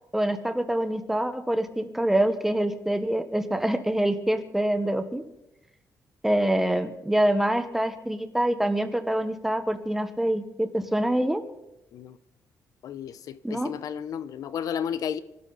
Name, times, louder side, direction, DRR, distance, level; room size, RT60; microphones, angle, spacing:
voice 1, 0.1-5.2 6.2-11.4 13.4-13.7, right 1 dB, 5° right, 1.3 m, -25 dB
voice 2, 12.8-15.2, left 8 dB, 70° left, 0.8 m, -32 dB
27.0 x 12.5 x 4.1 m
cardioid pair, 135°, 6 cm